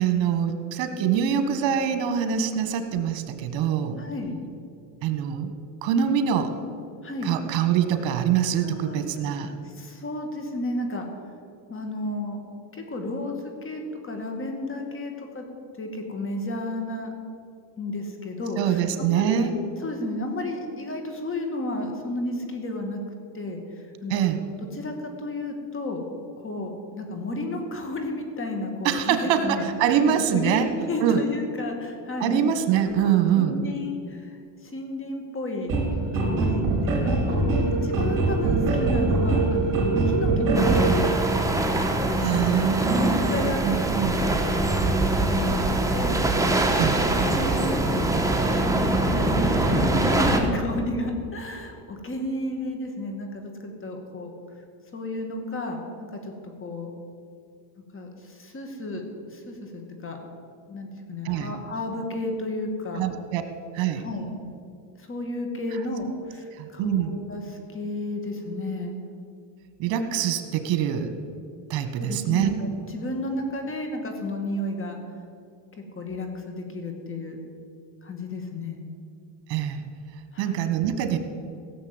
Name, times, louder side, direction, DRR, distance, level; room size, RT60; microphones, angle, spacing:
voice 1, 0.0-4.0 5.0-5.5 5.8-6.5 7.2-9.5 18.6-19.5 24.1-24.4 28.8-30.7 31.0-31.2 32.2-33.6 42.2-44.1 46.7-47.0 61.2-61.5 62.9-63.4 63.7-64.1 66.6-67.1 69.8-71.1 71.7-72.5 79.5-79.8 80.4-81.2, right 9 dB, 65° right, 8 dB, 1.7 m, -24 dB
voice 2, 3.9-4.4 7.0-7.3 8.6-9.0 9.6-11.1 11.7-12.4 12.7-15.5 15.8-17.1 17.8-19.5 19.8-23.0 23.3-24.2 24.7-26.0 26.4-29.6 30.1-32.4 32.8-35.7 36.1-37.4 37.8-39.7 40.0-41.3 42.0-42.4 42.9-43.9 44.3-44.4 44.8-47.9 48.6-54.3 54.9-56.3 56.6-56.9 57.9-60.2 60.7-63.0 64.0-64.3 64.9-68.9 72.0-75.0 75.8-77.4 78.0-78.8 80.3-80.6, left 1 dB, 25° left, 3 dB, 2.4 m, -32 dB
sound 1, 35.7-41.0, right 3 dB, 40° right, 4.1 m, -23 dB
sound 2, 40.5-50.4, right 2 dB, 5° right, 1.4 m, -23 dB
16.5 x 7.2 x 8.0 m, 2.4 s
supercardioid pair, 110°, 48 cm